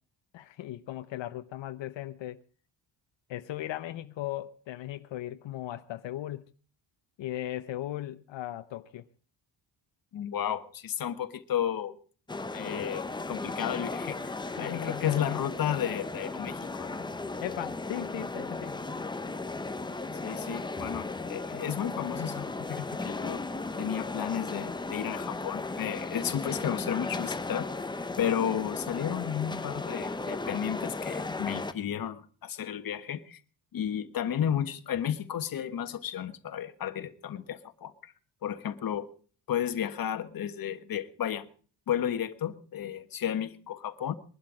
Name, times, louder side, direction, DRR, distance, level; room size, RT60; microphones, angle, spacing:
voice 1, 0.3-2.4 3.3-6.5 7.2-9.0 14.4-15.3 17.4-18.8 21.5-21.7, left 13 dB, 85° left, 1.0 m, -37 dB
voice 2, 10.1-12.0 12.5-17.0 20.2-23.4 23.8-27.7 28.2-33.4 33.7-38.1 38.4-39.1 39.5-41.5 41.9-44.1, left 9 dB, 50° left, 1.5 m, -33 dB
sound 1, 12.3-31.7, left 3 dB, 10° left, 0.7 m, -36 dB
22.0 x 12.0 x 4.9 m
wide cardioid pair, 175°, 44 cm